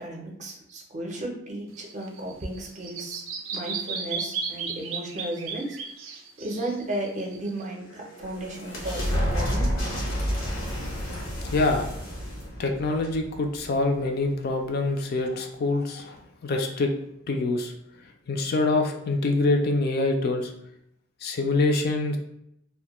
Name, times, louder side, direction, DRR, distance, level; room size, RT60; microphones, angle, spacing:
voice 1, 0.0-3.2 3.5-5.8 6.4-9.7, right 1 dB, 40° right, 0 dB, 0.5 m, -34 dB
Bird vocalization bird call bird song, 1.7-7.6, right 5 dB, 85° right, 0.4 m, -35 dB
sound 1, 7.6-14.0, equal, 90° left, 0.8 m, -30 dB
voice 2, 11.5-11.8 12.6-16.9 17.3-17.7 18.3-20.5 21.2-22.2, left 2 dB, 50° left, 3 dB, 0.3 m, -25 dB
2.2 x 2.1 x 2.9 m, 0.77 s
head